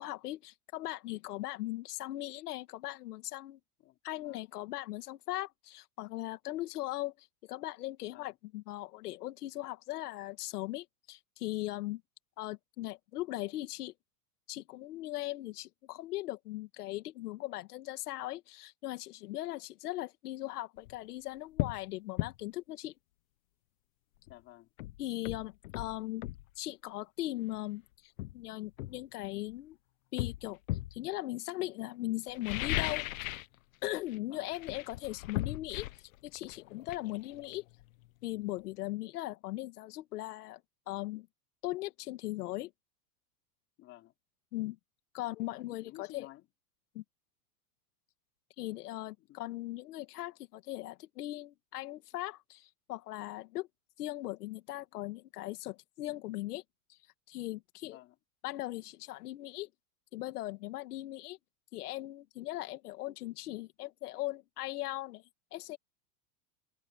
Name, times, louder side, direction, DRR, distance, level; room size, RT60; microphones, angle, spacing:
voice 1, 0.0-3.6 4.0-12.0 12.4-13.9 14.5-22.9 25.0-26.2 26.6-29.8 30.1-30.6 30.9-33.3 33.8-35.9 36.2-37.6 38.2-40.6 40.9-41.3 41.6-42.7 44.5-44.8 45.1-46.3 46.9-47.0 48.6-53.7 54.0-56.6 56.9-57.0 57.3-58.0 58.4-59.7 60.1-61.4 61.7-65.2 65.5-65.8, left 17 dB, 80° left, 2.0 m, -39 dB
voice 2, 3.8-4.4 8.1-8.4 24.3-24.7 34.3-34.5 43.8-44.1 45.5-46.5 49.2-49.4 57.9-58.2, left 16 dB, 30° left, 3.9 m, -53 dB
sound 1, 20.8-21.0 21.6-21.8 22.2-22.4 24.3-24.4 24.8-26.5 27.5-27.7 28.2-29.6 30.2-31.0 32.3-33.6 33.8-34.2 34.5-38.1 38.4-38.5, left 17 dB, 60° left, 1.2 m, -37 dB
supercardioid pair, 175°, 45 cm